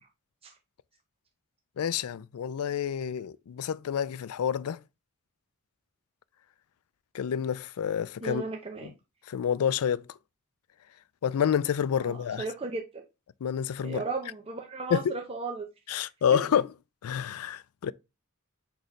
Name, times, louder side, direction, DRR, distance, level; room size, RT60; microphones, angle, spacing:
voice 1, 1.8-4.8 7.1-8.4 9.3-10.0 11.2-12.4 13.4-14.0 14.9-15.1 15.9-16.7 17.0-17.9, left 8 dB, 90° left, 0.4 m, -28 dB
voice 2, 8.2-8.9 12.0-13.0 13.8-15.7 16.3-16.6, right 3 dB, 25° right, 0.8 m, -35 dB
6.6 x 3.1 x 5.1 m
head